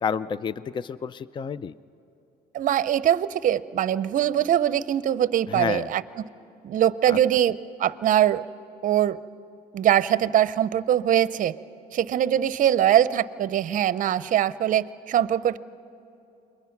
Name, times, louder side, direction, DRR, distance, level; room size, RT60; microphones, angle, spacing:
voice 1, 0.0-1.7 5.5-5.9 7.1-7.2, left 6 dB, 30° left, 17 dB, 0.4 m, -29 dB
voice 2, 2.5-6.3 6.6-8.4 8.8-9.2 9.7-11.5 11.9-15.6, right 11 dB, 50° right, 16 dB, 0.6 m, -22 dB
29.0 x 22.0 x 5.9 m, 2.9 s
cardioid pair, 110°, 17 cm